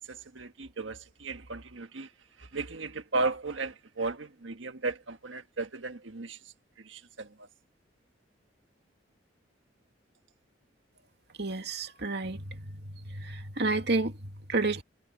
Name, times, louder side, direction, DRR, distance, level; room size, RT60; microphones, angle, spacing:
voice 1, 0.1-2.1 2.4-6.4 6.8-7.5, right 3 dB, 80° right, 1.5 m, -35 dB
voice 2, 11.4-14.8, right 3 dB, 60° right, 2.6 m, -31 dB
head